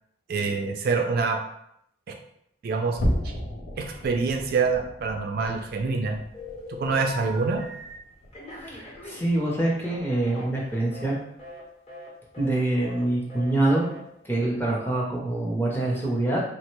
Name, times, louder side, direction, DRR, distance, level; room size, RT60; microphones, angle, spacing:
voice 1, 0.3-1.4 2.1-2.2 2.6-3.0 3.2-3.3 3.8-6.2 6.7-7.6, right 4 dB, 50° right, 3 dB, 0.3 m, -26 dB
sound 1, 2.9-9.6 9.9-10.2 10.6-10.8 11.3-11.5, equal, 75° left, 0.6 m, -35 dB
Telephone, 5.4-6.0 6.3-7.9 8.3-11.1 11.4-11.6 11.9-12.1 12.3-12.6 12.8-13.0 13.3-13.5 13.8-14.0, left 1 dB, 35° left, 0.9 m, -42 dB
voice 2, 8.7-11.2 12.4-13.9 14.2-16.4, right 2 dB, 10° left, -3 dB, 0.6 m, -25 dB
3.1 x 2.1 x 3.0 m, 0.75 s
head